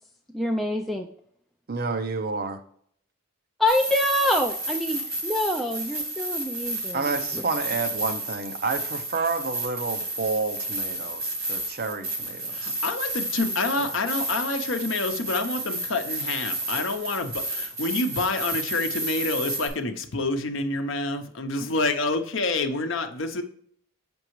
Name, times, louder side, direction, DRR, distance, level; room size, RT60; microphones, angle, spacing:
voice 1, 0.3-1.1 3.6-7.0 7.3-7.4, left 1 dB, ahead, 1 dB, 0.3 m, -26 dB
voice 2, 1.7-2.6 6.9-12.8, right 4 dB, 45° right, 7 dB, 0.6 m, -29 dB
sound 1, 3.7-19.7, right 1 dB, 80° right, 2.1 m, -31 dB
voice 3, 12.5-23.4, left 2 dB, 60° left, 7 dB, 0.7 m, -28 dB
6.7 x 5.3 x 3.0 m, 0.64 s
head